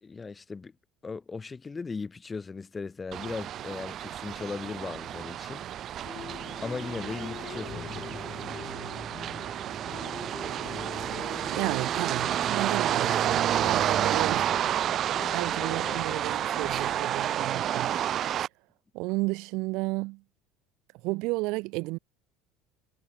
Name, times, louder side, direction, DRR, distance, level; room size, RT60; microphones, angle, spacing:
voice 1, 0.0-0.7 1.0-5.7 6.6-8.3, left 4 dB, 25° left, 3.5 m, -37 dB
sound 1, 3.1-18.5, right 11 dB, 50° right, 4.5 m, -30 dB
sound 2, 6.0-17.1, left 9 dB, 45° left, 6.5 m, -44 dB
voice 2, 11.5-14.5 15.3-17.9 18.9-20.2 21.0-22.0, right 24 dB, 70° right, 4.1 m, -32 dB
supercardioid pair, 90°, 0 cm